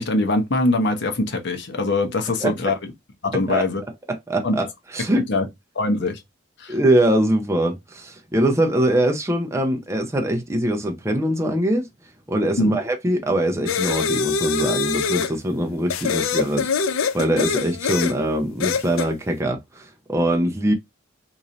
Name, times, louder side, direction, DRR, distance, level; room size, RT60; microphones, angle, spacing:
voice 1, 0.0-2.7 3.2-3.8 4.4-4.6 5.3-5.5 5.7-6.2 6.6-6.8 12.6-12.8, left 2 dB, 60° left, 0.8 m, -22 dB
voice 2, 2.4-2.7 3.3-3.6 4.1-4.7 4.9-5.3 6.7-11.9 12.3-20.7, right 1 dB, 15° right, 0.5 m, -22 dB
sound 1, 13.7-15.3 15.9-18.2 18.6-19.1, left 5 dB, 90° left, 0.4 m, -24 dB
3.0 x 2.6 x 3.9 m
head